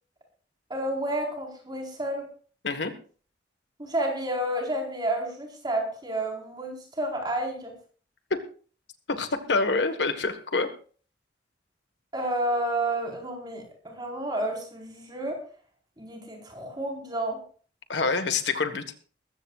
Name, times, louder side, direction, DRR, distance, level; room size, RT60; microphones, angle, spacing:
voice 1, 0.7-2.3 3.8-7.7 12.1-15.4 16.0-17.4, right 1 dB, 25° right, 0 dB, 4.5 m, -30 dB
voice 2, 9.1-10.7 17.9-18.8, left 3 dB, 70° left, 8 dB, 1.5 m, -26 dB
20.5 x 15.0 x 2.4 m, 0.41 s
head